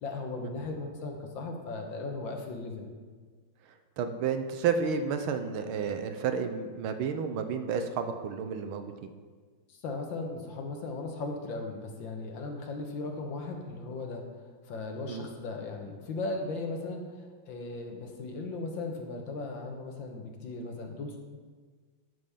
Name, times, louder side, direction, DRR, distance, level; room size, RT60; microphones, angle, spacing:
voice 1, 0.0-2.9 9.7-14.2 14.6-21.2, left 3 dB, 65° left, 2 dB, 1.9 m, -37 dB
voice 2, 4.0-8.9 15.1-15.3, right 6 dB, 80° right, 8 dB, 1.6 m, -31 dB
11.5 x 5.4 x 5.6 m, 1.5 s
omnidirectional pair, 2.3 m